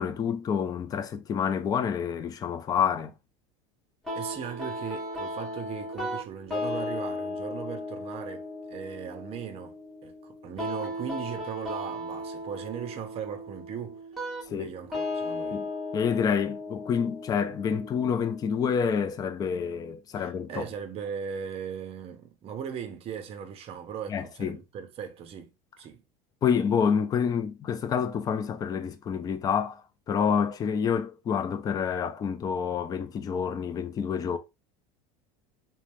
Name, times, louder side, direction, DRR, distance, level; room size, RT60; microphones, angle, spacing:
voice 1, 0.0-3.1 14.5-14.7 15.5-15.7 15.9-20.6 24.1-24.6 26.4-34.4, left 7 dB, 20° left, 0.3 m, -28 dB
sound 1, 4.1-19.0, left 1 dB, ahead, 1.0 m, -36 dB
voice 2, 4.1-14.0 14.5-15.6 20.2-25.5 25.8-26.0, right 8 dB, 35° right, 0.6 m, -38 dB
3.2 x 2.1 x 2.5 m
supercardioid pair, 130°, 17 cm